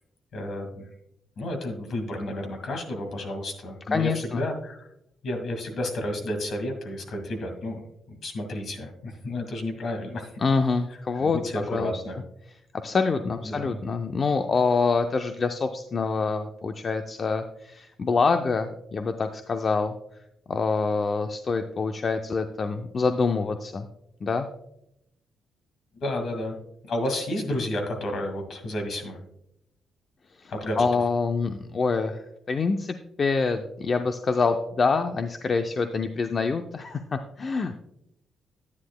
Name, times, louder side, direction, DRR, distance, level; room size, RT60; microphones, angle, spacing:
voice 1, 0.3-0.9 1.4-4.9 5.2-10.3 11.2-12.2 13.4-13.8 25.9-26.6 26.8-29.2 30.5-30.9, left 1 dB, 65° left, 4 dB, 2.0 m, -31 dB
voice 2, 3.9-4.4 10.4-12.0 12.8-20.0 20.5-23.9 24.2-24.5 30.4-37.8, left 4 dB, 40° left, 7 dB, 0.5 m, -26 dB
10.5 x 9.6 x 2.2 m, 0.80 s
cardioid pair, 100°, 0 cm